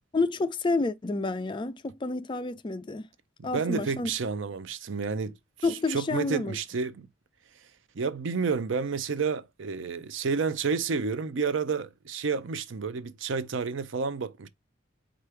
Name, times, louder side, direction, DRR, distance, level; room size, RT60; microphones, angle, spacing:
voice 1, 0.1-3.1 3.4-4.1 5.6-6.6, left 3 dB, 25° left, 0.4 m, -29 dB
voice 2, 3.4-5.4 5.7-7.1 7.9-14.5, right 5 dB, 70° right, 0.5 m, -30 dB
4.9 x 2.5 x 4.4 m
head